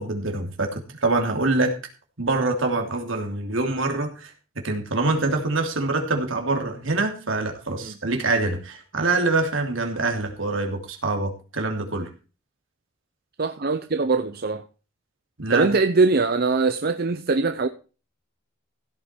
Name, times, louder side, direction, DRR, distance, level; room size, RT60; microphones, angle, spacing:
voice 1, 0.0-1.7 2.2-4.3 4.6-12.1 15.4-15.7, right 2 dB, 70° right, 3.0 m, -25 dB
voice 2, 13.4-14.6 15.5-17.7, right 3 dB, 50° right, 0.7 m, -22 dB
16.0 x 8.6 x 4.5 m
head